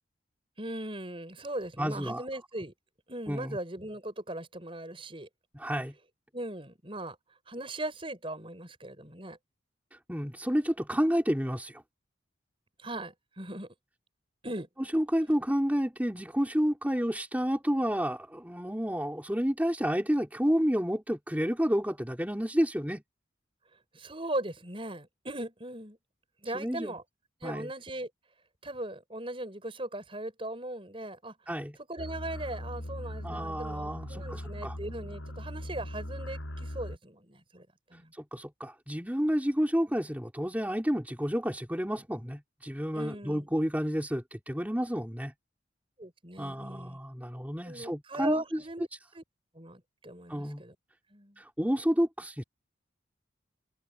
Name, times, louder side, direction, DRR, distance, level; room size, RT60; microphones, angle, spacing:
voice 1, 0.6-2.7 3.1-5.3 6.3-7.2 7.5-9.4 12.8-13.7 14.4-14.7 23.9-26.0 26.4-27.0 27.4-28.1 28.6-31.3 31.9-38.1 42.9-43.5 46.0-47.0 47.6-48.9 49.1-49.2 49.5-50.8 51.1-51.4, right 1 dB, 30° right, 5.8 m, -39 dB
voice 2, 1.8-2.2 3.3-3.6 5.5-5.9 9.9-11.8 14.9-23.0 26.5-27.0 27.4-27.7 31.5-31.8 33.2-34.8 37.9-45.3 46.4-48.6 50.3-50.6 51.4-52.4, equal, 10° right, 3.7 m, -30 dB
sound 1, 32.0-37.0, equal, 85° left, 6.8 m, -39 dB
head